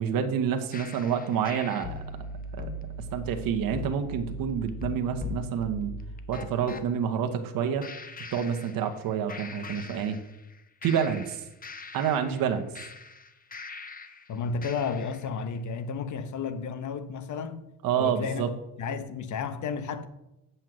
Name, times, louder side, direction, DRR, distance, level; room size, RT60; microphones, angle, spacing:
voice 1, 0.0-2.3 2.5-2.7 3.1-5.9 6.3-7.8 8.3-10.2 10.8-11.4 11.9-12.7 17.8-18.5, right 8 dB, 60° right, 1.1 m, -28 dB
sound 1, 0.7-6.9 7.8-9.0 9.3-10.5 10.8-14.2 14.6-15.3, left 2 dB, 20° left, 0.8 m, -40 dB
voice 2, 14.3-17.7 18.0-18.5 18.8-20.1, left 5 dB, 50° left, 1.0 m, -32 dB
7.7 x 5.5 x 7.7 m
cardioid pair, 105°, 39 cm